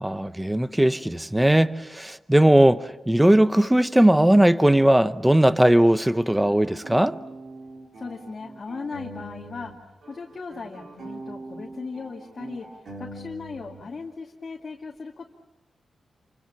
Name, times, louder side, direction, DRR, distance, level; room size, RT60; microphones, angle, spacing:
voice 1, 0.0-7.2, right 1 dB, 5° right, 0.8 m, -19 dB
sound 1, 5.9-9.8 10.0-13.8, right 2 dB, 60° right, 4.2 m, -42 dB
voice 2, 8.0-15.3, left 4 dB, 45° left, 2.4 m, -37 dB
28.5 x 25.0 x 7.2 m
wide cardioid pair, 115°, 0 cm